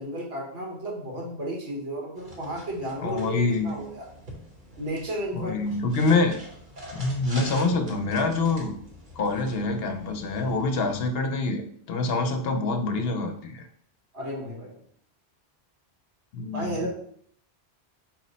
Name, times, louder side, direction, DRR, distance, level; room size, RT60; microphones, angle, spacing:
voice 1, 0.0-4.1 4.8-5.5 14.1-14.8 16.5-16.9, right 1 dB, 80° right, -3 dB, 1.5 m, -33 dB
sound 1, 2.2-11.1, equal, 50° right, 1.0 m, -45 dB
voice 2, 3.0-3.7 5.3-6.4 6.9-8.7 9.2-11.6 11.9-13.7 16.3-16.8, left 3 dB, 70° left, 6 dB, 0.8 m, -26 dB
4.4 x 2.0 x 4.0 m, 0.63 s
omnidirectional pair, 1.1 m